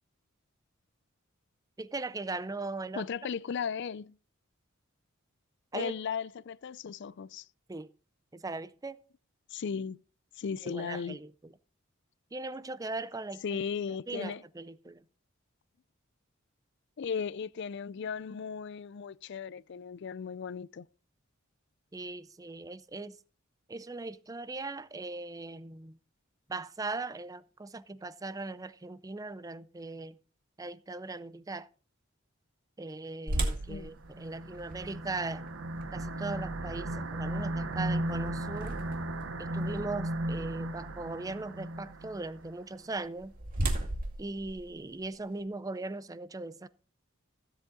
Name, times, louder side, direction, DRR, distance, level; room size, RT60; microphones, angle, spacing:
voice 1, 1.8-3.1 5.7-5.9 7.7-7.9 8.3-9.0 10.6-11.5 12.3-13.6 14.1-15.0 21.9-23.2 23.7-26.0 26.5-30.2 30.6-31.7 32.8-35.5 35.9-38.8 39.4-43.3 44.2-46.7, right 3 dB, 15° right, 0.5 m, -39 dB
voice 2, 2.9-4.2 5.7-7.5 9.5-10.0 10.4-11.2 13.4-14.4 17.0-20.9 33.7-33.9, left 6 dB, 55° left, 0.4 m, -36 dB
sound 1, 33.3-39.2 39.8-39.9 40.5-40.7 42.8-45.4, right 1 dB, 45° right, 2.3 m, -37 dB
sound 2, 33.9-42.5, right 1 dB, 60° right, 1.0 m, -36 dB
15.5 x 8.0 x 3.8 m
head